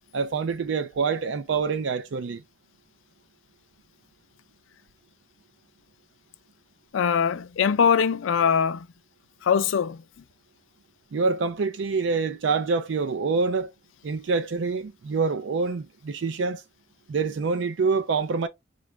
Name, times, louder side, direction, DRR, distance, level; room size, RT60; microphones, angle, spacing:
voice 1, 0.1-2.4 11.1-13.7 14.0-16.6 17.1-18.5, right 4 dB, 65° right, 0.4 m, -26 dB
voice 2, 6.9-8.9 9.4-10.0, left 7 dB, 80° left, 0.4 m, -22 dB
5.0 x 2.3 x 3.1 m
head